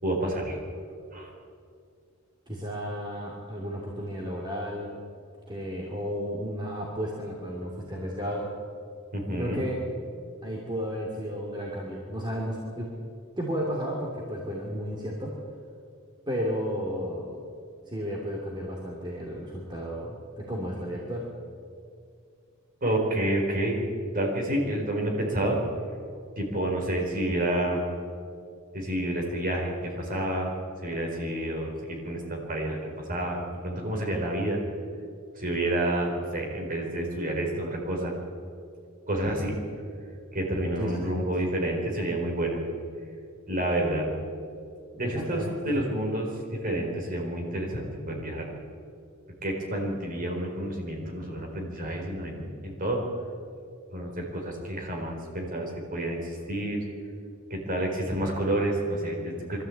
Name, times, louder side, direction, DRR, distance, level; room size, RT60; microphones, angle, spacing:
voice 1, 0.0-0.6 1.1-1.3 9.1-9.6 22.8-23.8 24.1-25.6 26.4-27.8 28.7-30.5 30.8-34.6 35.4-38.2 39.1-39.6 40.3-42.6 43.5-44.1 44.9-48.5 49.4-53.0 53.9-56.8 57.5-59.6, right 1 dB, 40° right, 0 dB, 4.3 m, -29 dB
voice 2, 2.5-5.0 5.5-8.5 9.3-9.8 10.4-12.9 13.4-15.4 16.3-17.4 17.9-21.2 40.8-41.3 45.0-45.8, equal, 20° right, -2 dB, 2.7 m, -33 dB
23.5 x 13.0 x 8.6 m, 2.3 s
head